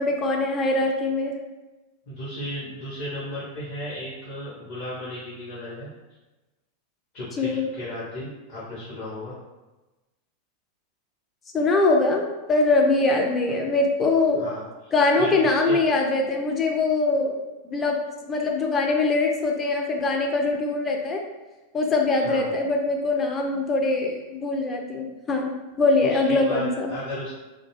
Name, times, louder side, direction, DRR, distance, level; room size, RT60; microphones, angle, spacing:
voice 1, 0.0-1.3 7.4-7.6 11.5-14.5 14.9-17.3 17.6-21.2 21.7-26.9, left 3 dB, 20° left, 1 dB, 0.4 m, -23 dB
voice 2, 2.1-5.9 7.1-9.3 14.3-14.9 15.2-15.8 22.2-22.5 26.0-27.3, left 1 dB, 45° left, -10 dB, 0.8 m, -35 dB
2.3 x 2.2 x 3.2 m, 1.1 s
figure-of-eight pair, 90°, 0 cm